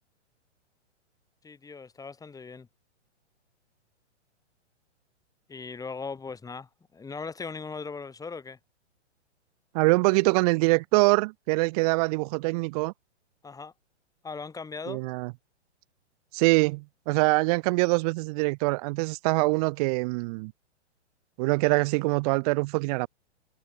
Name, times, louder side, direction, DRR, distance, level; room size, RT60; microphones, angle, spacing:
voice 1, 1.4-2.7 5.5-8.6 13.4-13.7 14.2-15.0, left 4 dB, 10° left, 3.8 m, -39 dB
voice 2, 9.7-12.9 14.9-15.3 16.3-20.5 21.4-23.1, right 26 dB, 35° right, 0.7 m, -24 dB
hypercardioid pair, 125°, 36 cm